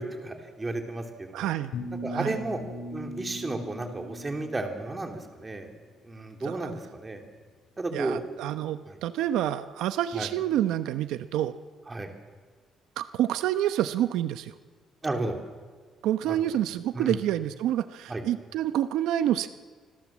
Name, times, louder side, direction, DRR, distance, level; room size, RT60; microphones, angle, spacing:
voice 1, 0.0-1.5 2.0-2.6 2.9-5.7 6.0-7.2 7.8-8.2 8.8-9.0 10.1-10.3 11.9-12.1 15.0-15.4 16.3-16.4 16.9-17.2 18.1-18.2, right 2 dB, 15° right, 4 dB, 3.1 m, -33 dB
voice 2, 1.3-1.7 2.1-2.4 6.4-6.7 7.9-11.5 13.0-14.5 16.0-19.5, right 12 dB, 90° right, 11 dB, 1.0 m, -28 dB
sound 1, 1.7-4.9, left 1 dB, 60° left, 4.2 m, -38 dB
28.5 x 25.5 x 7.5 m, 1.5 s
cardioid pair, 165°, 0 cm